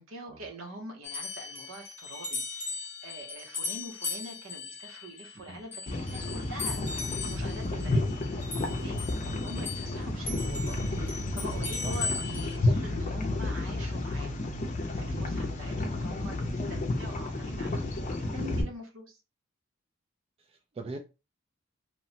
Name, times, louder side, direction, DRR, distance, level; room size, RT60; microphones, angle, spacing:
voice 1, 0.0-8.5 8.7-9.0 9.4-14.5 14.9-19.2, right 1 dB, 75° right, 0.8 m, -44 dB
sound 1, 1.0-10.0 10.3-12.6, left 4 dB, 10° left, 0.8 m, -38 dB
sound 2, 5.9-18.6, left 2 dB, 35° left, 0.5 m, -31 dB
voice 2, 10.9-11.2 11.8-12.0 16.4-16.8 20.4-21.0, right 3 dB, 30° right, 0.3 m, -43 dB
2.9 x 2.1 x 2.7 m
head